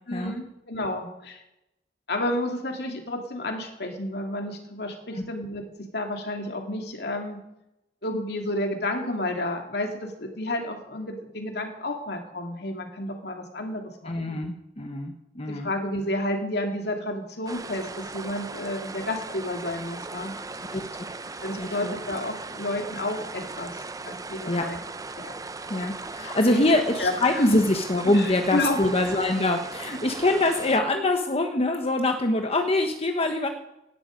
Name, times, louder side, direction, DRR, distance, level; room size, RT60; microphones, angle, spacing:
voice 1, 0.1-1.4 2.1-7.4 8.0-14.3 15.5-17.9 18.1-20.3 21.4-24.8 26.5-26.7 27.0-27.6 28.1-28.8, left 1 dB, 65° left, 3 dB, 2.7 m, -31 dB
voice 2, 14.1-15.7 20.7-20.8 21.6-21.9 24.5-24.7 25.2-25.3 25.7-33.5, left 2 dB, 35° left, 5 dB, 1.2 m, -24 dB
sound 1, 17.5-30.8, right 3 dB, 20° right, 0.7 m, -38 dB
18.0 x 12.0 x 5.2 m, 0.90 s
head